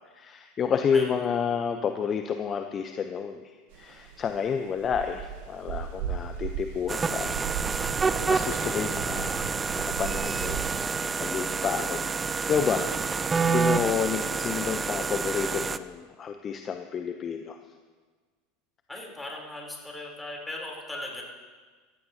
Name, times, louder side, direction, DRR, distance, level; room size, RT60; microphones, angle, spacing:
voice 1, 0.0-7.5 8.3-12.0 12.5-17.6, left 7 dB, 35° left, 6 dB, 0.7 m, -30 dB
sound 1, 3.7-10.7, right 8 dB, 60° right, 0.9 m, -37 dB
sound 2, 6.9-15.8, right 5 dB, 20° right, 0.5 m, -28 dB
voice 2, 18.9-21.2, left 1 dB, 10° left, -2 dB, 3.6 m, -38 dB
16.5 x 14.0 x 2.9 m, 1.4 s
hypercardioid pair, 80°, 0 cm